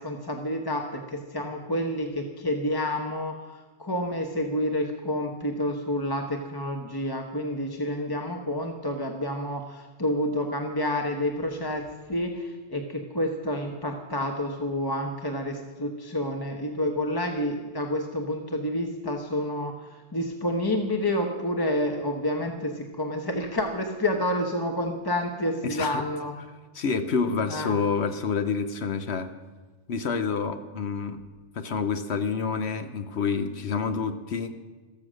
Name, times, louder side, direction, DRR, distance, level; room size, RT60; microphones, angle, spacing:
voice 1, 0.0-11.8 12.1-26.3 27.5-27.8, left 1 dB, 20° left, 3 dB, 1.1 m, -29 dB
voice 2, 25.6-26.0 26.7-29.3 29.9-31.2 31.5-34.5, left 5 dB, 70° left, 9 dB, 1.1 m, -28 dB
14.5 x 14.0 x 6.4 m, 1.3 s
omnidirectional pair, 1.2 m